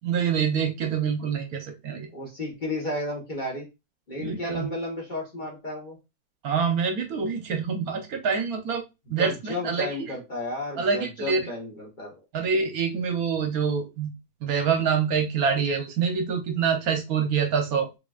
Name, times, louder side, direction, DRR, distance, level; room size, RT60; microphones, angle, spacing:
voice 1, 0.0-2.1 4.2-4.7 6.4-8.8 9.1-10.1 10.8-11.4 12.3-14.1 14.4-17.9, right 6 dB, 70° right, 4 dB, 1.1 m, -26 dB
voice 2, 2.1-3.7 4.1-6.0 9.2-12.1, left 1 dB, 30° left, -2 dB, 1.2 m, -33 dB
3.8 x 3.5 x 2.3 m, 0.24 s
omnidirectional pair, 1.7 m